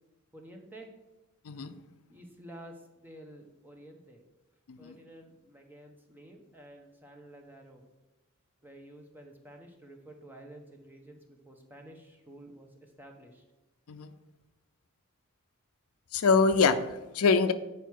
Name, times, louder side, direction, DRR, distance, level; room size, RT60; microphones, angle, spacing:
voice 1, 0.3-0.9 2.1-4.2 4.8-7.8 8.6-13.4, right 1 dB, 10° right, 2 dB, 0.9 m, -51 dB
voice 2, 16.1-17.5, left 4 dB, 85° left, 10 dB, 0.5 m, -25 dB
9.0 x 4.7 x 4.6 m, 1.1 s
head